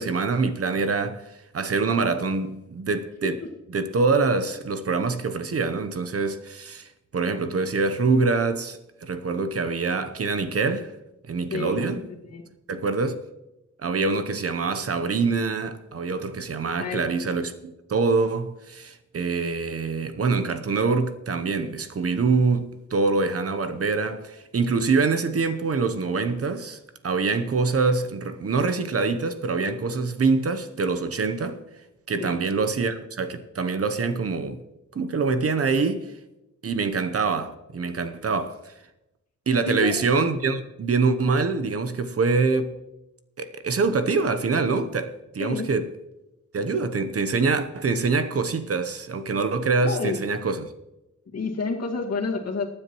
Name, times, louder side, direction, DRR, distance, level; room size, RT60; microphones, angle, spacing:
voice 1, 0.0-3.4 3.7-10.9 11.3-12.0 12.7-13.2 13.8-31.6 32.1-34.6 34.9-36.1 36.6-38.7 39.5-42.7 43.4-45.9 46.5-50.7, right 4 dB, 50° right, 0.9 m, -25 dB
voice 2, 11.5-11.8 12.2-12.4 16.8-17.1 32.2-32.4 39.7-39.9 45.4-45.7 49.8-50.2 51.3-52.6, left 4 dB, 55° left, 2.0 m, -29 dB
22.5 x 9.7 x 3.1 m
wide cardioid pair, 150°, 30 cm